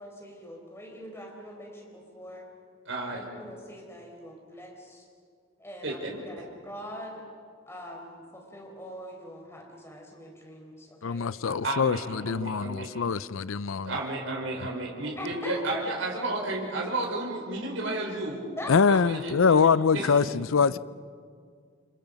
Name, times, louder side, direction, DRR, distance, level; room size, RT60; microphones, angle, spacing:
voice 1, 0.0-2.4 3.0-5.0 5.6-7.2 7.7-11.3 15.1-15.6 18.6-18.7, equal, 15° left, 0 dB, 4.7 m, -43 dB
voice 2, 2.8-3.2 5.8-6.2 11.5-13.0 13.8-18.4 18.9-20.5, right 2 dB, 70° right, -1 dB, 4.9 m, -33 dB
voice 3, 11.0-13.9 18.7-20.8, left 5 dB, 85° left, 17 dB, 0.5 m, -24 dB
29.5 x 27.0 x 5.3 m, 2.1 s
head